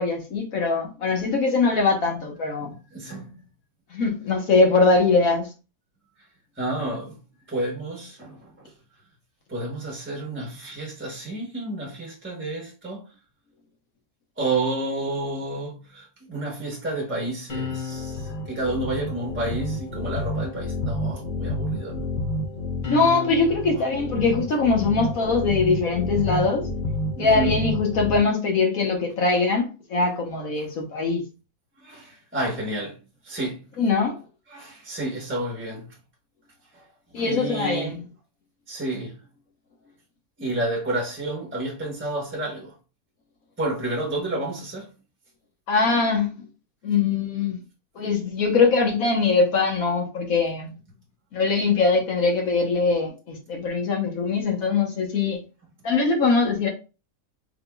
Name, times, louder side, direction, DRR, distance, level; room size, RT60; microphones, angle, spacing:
voice 1, 0.0-2.7 3.9-5.5 22.9-26.6 27.2-31.2 33.8-34.2 37.1-38.0 45.7-46.3 46.8-47.6 48.0-50.7 51.3-55.4 55.8-56.7, left 4 dB, 70° left, 1.4 m, -22 dB
voice 2, 2.6-3.4 6.6-8.8 9.5-13.2 14.4-22.0 23.7-23.8 27.1-27.6 30.6-30.7 31.8-33.8 34.5-36.0 36.7-38.0 38.7-39.3 40.4-42.8 43.6-44.9, right 2 dB, 10° right, 1.0 m, -30 dB
sound 1, 17.5-28.2, left 2 dB, 40° left, 0.8 m, -30 dB
4.6 x 3.5 x 2.3 m
omnidirectional pair, 1.6 m